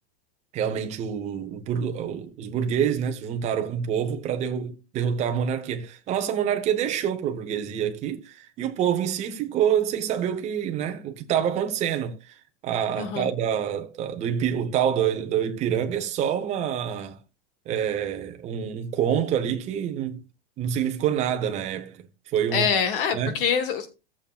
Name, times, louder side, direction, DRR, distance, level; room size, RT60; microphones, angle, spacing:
voice 1, 0.5-17.2 17.7-20.2 20.6-22.7 23.1-23.4, right 9 dB, 20° right, 0.8 m, -27 dB
voice 2, 13.0-13.3 22.5-24.0, left 7 dB, 55° left, 1.3 m, -25 dB
16.5 x 7.2 x 2.3 m
supercardioid pair, 170°, 33 cm